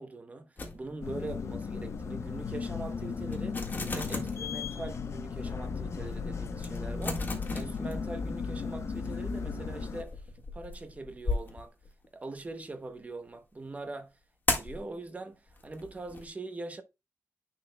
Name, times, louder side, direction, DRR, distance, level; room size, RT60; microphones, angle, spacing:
voice 1, 0.0-3.6 3.9-10.2 10.5-11.7 12.1-14.2 14.5-16.8, right 2 dB, 30° right, 0.8 m, -42 dB
sound 1, 0.6-1.3 1.6-1.8 2.3-2.4 2.9-3.0 3.3-4.5 5.1-5.2 5.8-5.9 6.0-6.2 6.6-8.4 8.8-12.4 14.5-14.8 15.5-16.3, left 3 dB, 35° left, 1.6 m, -36 dB
sound 2, 1.0-10.0, left 5 dB, 60° left, 0.5 m, -36 dB
10.5 x 4.1 x 2.2 m
wide cardioid pair, 140°, 5 cm